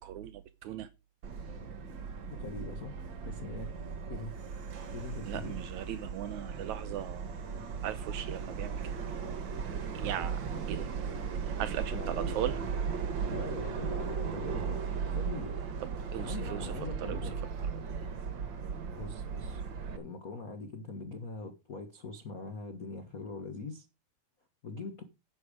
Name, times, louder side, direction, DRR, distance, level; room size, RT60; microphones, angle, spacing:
voice 1, 0.0-0.9 5.3-7.4 7.8-9.5 9.9-10.4 10.7-10.9 11.4-12.6 15.8-17.4, right 11 dB, 75° right, 1.8 m, -39 dB
Subway metro underground, 1.2-20.0, right 6 dB, 50° right, 1.5 m, -37 dB
voice 2, 2.3-3.0 3.2-4.4 4.9-5.6 11.9-12.5 13.3-15.5 16.2-17.4 19.0-19.6 20.0-23.8 24.6-25.0, left 3 dB, 85° left, 0.7 m, -42 dB
11.0 x 8.0 x 5.0 m
omnidirectional pair, 3.9 m